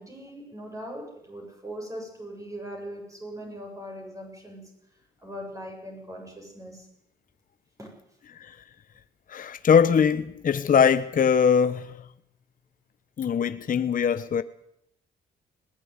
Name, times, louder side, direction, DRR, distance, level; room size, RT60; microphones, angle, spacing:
voice 1, 0.0-4.7 5.2-6.9 7.8-7.9, equal, 15° right, 7.3 m, -40 dB
voice 2, 9.3-12.0 13.2-14.4, left 7 dB, 45° left, 0.9 m, -22 dB
20.5 x 15.0 x 9.5 m
cardioid pair, 90°, 20 cm